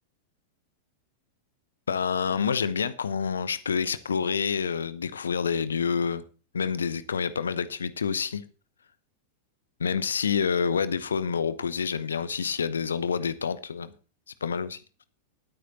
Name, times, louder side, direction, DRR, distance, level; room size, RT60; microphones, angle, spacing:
voice 1, 1.9-6.2 6.5-8.4 9.8-13.9 14.4-14.8, left 6 dB, 70° left, 15 dB, 0.8 m, -28 dB
19.5 x 9.3 x 2.9 m, 0.35 s
figure-of-eight pair, 90°, 0 cm